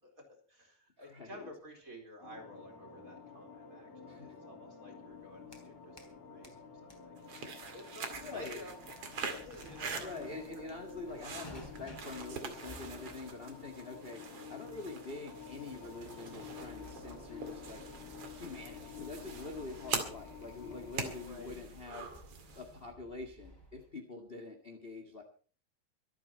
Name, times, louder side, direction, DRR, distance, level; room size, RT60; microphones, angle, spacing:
voice 1, 0.0-7.3 7.7-10.3 21.1-21.6, left 1 dB, 25° right, 2 dB, 4.3 m, -52 dB
voice 2, 1.0-1.5 4.1-4.4 7.3-7.5 8.2-8.6 9.9-17.9 18.3-22.1 22.5-25.2, left 3 dB, 25° left, 5 dB, 1.2 m, -46 dB
sound 1, 2.2-21.2, left 6 dB, 50° left, 3.5 m, -51 dB
sound 2, 5.1-6.2 6.4-23.9, left 1 dB, 5° left, 3.0 m, -56 dB
sound 3, 7.2-22.8, right 5 dB, 45° right, 2.8 m, -44 dB
24.5 x 8.9 x 4.3 m, 0.40 s
omnidirectional pair, 4.1 m